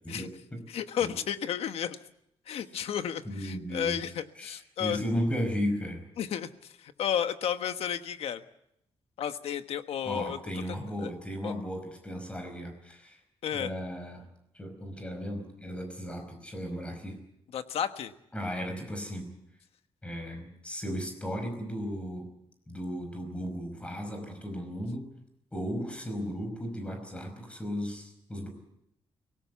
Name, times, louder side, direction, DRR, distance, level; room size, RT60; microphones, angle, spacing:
voice 1, 0.0-0.6 1.0-1.1 3.2-4.0 4.4-6.0 10.0-13.2 13.5-14.3 14.5-17.2 18.3-19.3 20.0-22.2 22.7-25.1 25.5-28.5, equal, 10° left, 6 dB, 5.2 m, -35 dB
voice 2, 0.7-2.0 2.5-5.0 6.2-8.4 9.2-10.4 11.0-11.1 11.4-11.5 13.4-13.7 17.5-18.1, left 9 dB, 85° left, 9 dB, 1.3 m, -32 dB
24.0 x 18.0 x 8.3 m, 0.78 s
wide cardioid pair, 165°, 10 cm